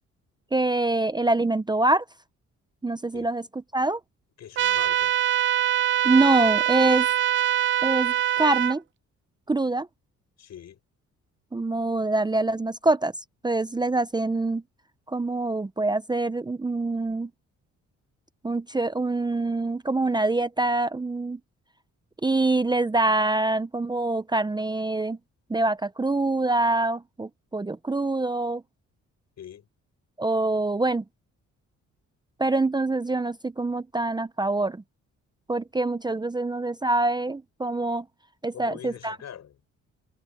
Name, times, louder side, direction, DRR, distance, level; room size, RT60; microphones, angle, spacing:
voice 1, 0.5-2.0 2.8-3.4 3.7-4.0 6.0-7.1 7.8-8.8 9.5-9.9 11.5-13.1 13.4-14.6 15.1-17.3 18.4-21.4 22.2-25.2 25.5-28.6 30.2-31.0 32.4-34.8 35.5-38.1 38.4-39.2, right 2 dB, 15° right, 0.7 m, -25 dB
voice 2, 4.4-5.2 10.4-10.8 29.4-29.7 38.5-39.6, left 9 dB, 60° left, 6.1 m, -43 dB
sound 1, 4.6-8.7, right 11 dB, 40° right, 0.4 m, -23 dB
cardioid pair, 90°, 30 cm